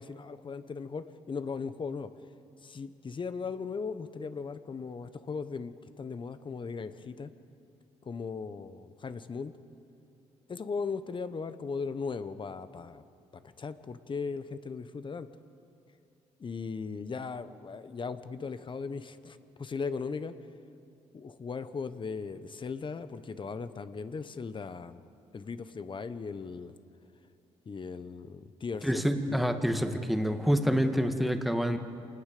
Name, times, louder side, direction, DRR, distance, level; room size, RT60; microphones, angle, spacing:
voice 1, 0.0-2.1 2.6-7.3 8.0-9.5 10.5-13.0 13.3-15.3 16.4-20.3 21.1-25.0 25.3-26.7 27.7-28.9 29.3-29.6, left 5 dB, 40° left, 12 dB, 1.1 m, -38 dB
voice 2, 28.8-31.8, equal, ahead, 6 dB, 1.8 m, -27 dB
26.5 x 19.5 x 6.8 m, 2.5 s
cardioid pair, 80°, 13 cm